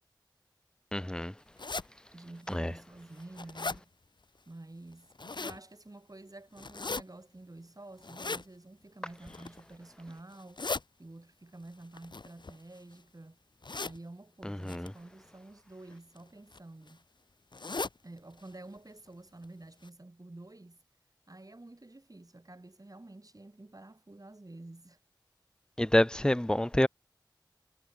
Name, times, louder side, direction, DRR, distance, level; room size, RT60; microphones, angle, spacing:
voice 1, 0.9-1.3 2.5-2.7 14.4-14.9 25.8-26.9, left 1 dB, 10° left, 0.8 m, -27 dB
sound 1, 1.6-1.9 2.5-2.6 3.0-3.8 4.9-5.6 6.6-7.0 8.0-8.4 9.2-9.6 10.3-10.8 11.9-12.9 13.6-14.0 14.7-14.9 15.9-16.2 16.5-16.6 16.9-17.0 17.5-18.0 18.4-18.5 18.8-18.9 19.4-19.5 19.8-19.9, left 3 dB, 75° left, 0.9 m, -37 dB
voice 2, 2.1-3.9 4.5-10.6 11.0-13.4 13.8-17.0 18.0-20.8 21.3-25.0, right 2 dB, 50° right, 4.3 m, -49 dB
wide cardioid pair, 40°, 8 cm